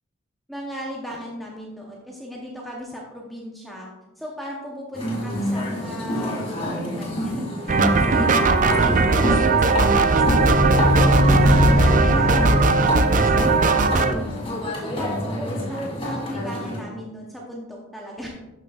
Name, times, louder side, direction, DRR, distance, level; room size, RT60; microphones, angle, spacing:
voice 1, 0.5-3.9 4.2-14.4 14.8-18.3, equal, ahead, -3 dB, 0.7 m, -37 dB
sound 1, 4.9-16.8, equal, 30° left, 2.3 m, -28 dB
sound 2, 7.7-14.1, right 4 dB, 40° right, 0.4 m, -19 dB
sound 3, 9.6-14.2, left 1 dB, 75° left, 1.8 m, -22 dB
12.0 x 6.0 x 2.3 m, 1.1 s
head